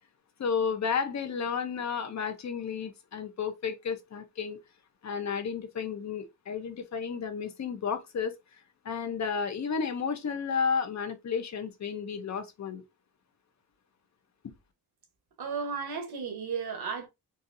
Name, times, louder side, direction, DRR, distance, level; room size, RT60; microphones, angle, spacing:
voice 1, 0.4-4.6 5.0-12.8 14.4-14.5, left 6 dB, 50° left, 0.7 m, -32 dB
voice 2, 15.4-17.1, right 5 dB, 85° right, 1.1 m, -34 dB
4.0 x 2.5 x 2.5 m
wide cardioid pair, 140°, 36 cm